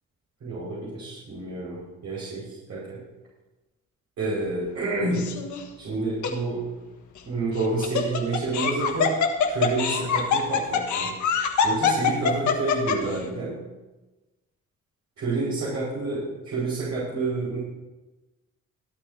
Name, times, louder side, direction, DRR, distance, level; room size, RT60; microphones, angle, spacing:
voice 1, 0.4-3.0 4.2-5.3 5.8-6.6 7.3-9.2 9.5-11.1 11.6-13.6 15.2-17.6, right 3 dB, 60° right, -8 dB, 5.3 m, -29 dB
Laughter, 5.1-5.6 6.2-6.3 7.6-13.2, left 6 dB, 70° left, 1.5 m, -24 dB
26.0 x 8.8 x 2.8 m, 1.1 s
cardioid pair, 90°, 30 cm